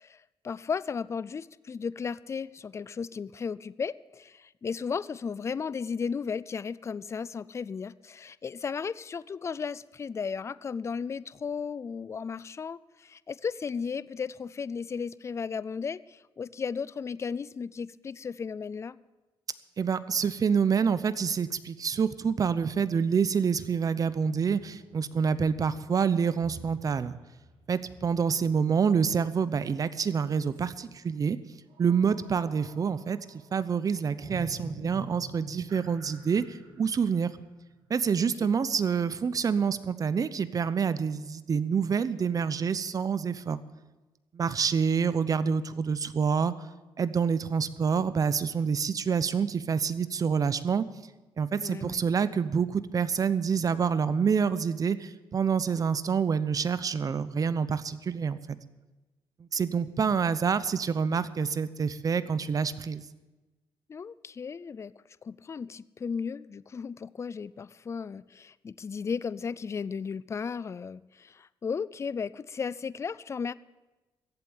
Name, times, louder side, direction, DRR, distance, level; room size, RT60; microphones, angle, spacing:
voice 1, 0.0-19.0 38.2-38.3 51.6-52.0 59.9-60.5 63.9-64.9 65.2-73.5, left 6 dB, 30° left, 19 dB, 0.4 m, -35 dB
voice 2, 19.8-27.1 27.7-31.4 31.8-33.2 33.5-37.3 37.9-43.6 44.3-46.5 47.0-50.8 51.4-58.4 59.4-63.0, right 6 dB, 40° right, 15 dB, 0.7 m, -27 dB
sound 1, 24.3-30.1 30.4-30.7 31.7-38.3, right 2 dB, 80° right, 6.7 m, -48 dB
15.0 x 8.3 x 8.8 m, 1.1 s
cardioid pair, 120°, 10 cm